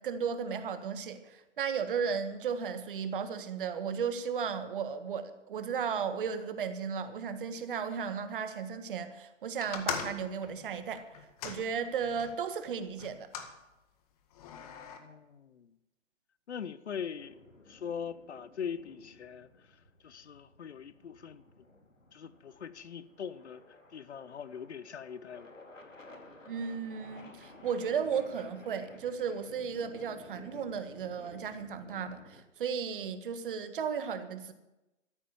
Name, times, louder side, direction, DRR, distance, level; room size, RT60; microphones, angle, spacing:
voice 1, 0.0-11.0 11.4-13.3 26.5-34.5, right 6 dB, 45° right, 1.5 m, -35 dB
sound 1, 9.6-12.4 13.0-13.5 14.3-15.0, left 7 dB, 30° left, 1.7 m, -40 dB
voice 2, 15.0-15.7 16.5-19.5 20.0-21.4 22.1-23.6 23.9-25.5, left 7 dB, 60° left, 0.9 m, -41 dB
sound 2, 17.2-32.4, left 2 dB, 90° left, 2.5 m, -55 dB
13.5 x 10.0 x 7.2 m
figure-of-eight pair, 135°, 37 cm